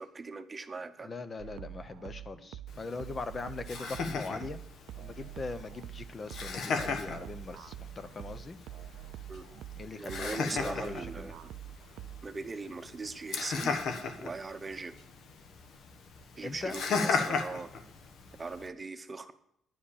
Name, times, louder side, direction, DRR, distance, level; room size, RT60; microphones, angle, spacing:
voice 1, 0.0-1.1 9.3-9.5 10.0-11.5 12.2-13.8 14.2-14.9 16.4-17.7 18.4-19.3, right 3 dB, 25° right, 9 dB, 0.9 m, -40 dB
voice 2, 1.0-4.6 5.0-8.6 9.8-11.3 16.4-16.8, left 3 dB, 35° left, 11 dB, 0.8 m, -41 dB
sound 1, 1.4-12.4, right 12 dB, 85° right, 0.4 m, -46 dB
Laughter, 2.7-18.7, left 4 dB, 70° left, 1.3 m, -37 dB
10.5 x 5.1 x 8.4 m, 0.76 s
cardioid pair, 90°, 0 cm